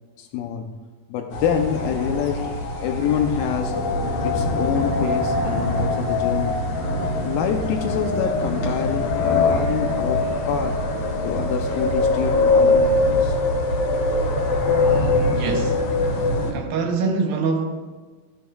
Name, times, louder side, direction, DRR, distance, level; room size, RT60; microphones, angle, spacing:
voice 1, 0.2-0.7 1.1-2.5 2.8-3.8 4.2-6.6 7.2-10.8 11.2-13.4, left 8 dB, 80° left, 2.2 m, -26 dB
sound 1, 1.3-16.5, left 2 dB, 55° left, 2.1 m, -22 dB
voice 2, 15.3-15.8 16.5-17.9, right 4 dB, 75° right, 2.5 m, -24 dB
14.5 x 12.0 x 2.3 m
omnidirectional pair, 4.5 m